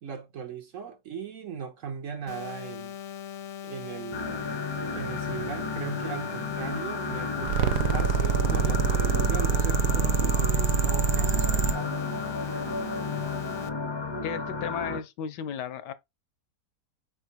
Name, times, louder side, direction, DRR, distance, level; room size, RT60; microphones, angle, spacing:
voice 1, 0.0-3.0 3.6-4.4 4.9-12.0, right 7 dB, 55° right, 1.0 m, -38 dB
sound 1, 2.3-13.7, left 9 dB, 60° left, 0.9 m, -40 dB
sound 2, 4.1-15.0, left 3 dB, 30° left, 0.4 m, -33 dB
sound 3, 7.4-11.7, right 6 dB, 70° right, 1.2 m, -24 dB
voice 2, 14.2-15.9, left 8 dB, 75° left, 1.2 m, -34 dB
4.8 x 4.5 x 4.3 m
omnidirectional pair, 1.9 m